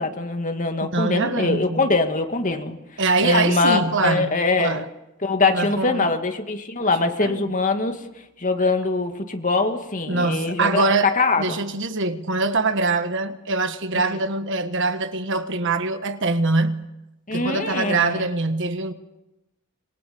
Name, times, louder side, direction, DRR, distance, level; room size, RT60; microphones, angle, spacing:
voice 1, 0.0-2.8 3.2-4.8 5.2-8.0 8.4-11.4 13.9-14.2 17.3-18.3, left 3 dB, 35° left, 2.1 m, -23 dB
voice 2, 0.9-1.9 3.0-4.9 5.5-6.1 6.8-7.4 10.1-16.9 17.3-18.9, right 3 dB, 55° right, 1.4 m, -24 dB
26.5 x 22.5 x 6.9 m
head